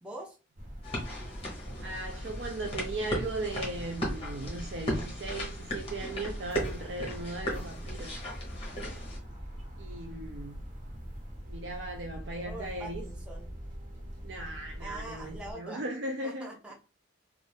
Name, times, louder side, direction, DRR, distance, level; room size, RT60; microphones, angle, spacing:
voice 1, 0.0-0.4 12.4-13.5 14.8-15.8 16.2-16.7, right 2 dB, 5° right, 0.5 m, -43 dB
sound 1, 0.6-15.5, equal, 40° right, 0.9 m, -42 dB
sound 2, 0.8-9.2, equal, 30° left, 1.0 m, -37 dB
voice 2, 1.8-8.2 8.8-9.0 9.8-10.6 11.4-13.0 14.2-16.5, right 2 dB, 55° right, 0.4 m, -37 dB
2.6 x 2.5 x 3.3 m
head